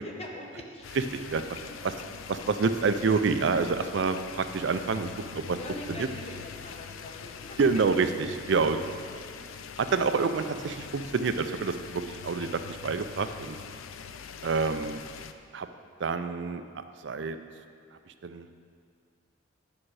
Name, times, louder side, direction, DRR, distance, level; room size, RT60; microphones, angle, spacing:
voice 1, 0.0-0.8 2.3-2.4 5.5-7.6 8.5-9.4 13.9-14.2, left 1 dB, 30° left, 0 dB, 0.9 m, -43 dB
Rain on Window, 0.8-15.3, left 7 dB, 85° left, 0.4 m, -43 dB
voice 2, 0.9-1.4 1.8-1.9 2.3-5.6 5.9-6.0 7.6-8.8 9.8-13.6 14.4-15.0 15.5-15.7 16.0-17.4 18.2-18.5, right 4 dB, 65° right, 9 dB, 0.4 m, -28 dB
8.7 x 6.1 x 4.7 m, 2.2 s
head